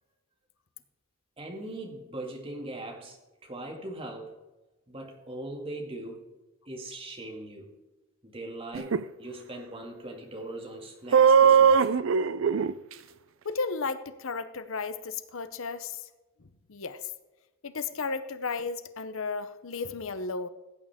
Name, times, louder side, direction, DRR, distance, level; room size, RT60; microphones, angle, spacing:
voice 1, 1.4-4.4 4.9-6.3 6.7-7.7 8.2-11.8, right 1 dB, 25° right, 0 dB, 2.1 m, -40 dB
sound 1, 8.7-9.0 11.1-12.7, right 6 dB, 65° right, 0.4 m, -19 dB
voice 2, 13.4-16.0 16.7-17.0 17.6-20.5, left 4 dB, 70° left, 11 dB, 0.7 m, -34 dB
16.0 x 8.9 x 3.6 m, 1.1 s
head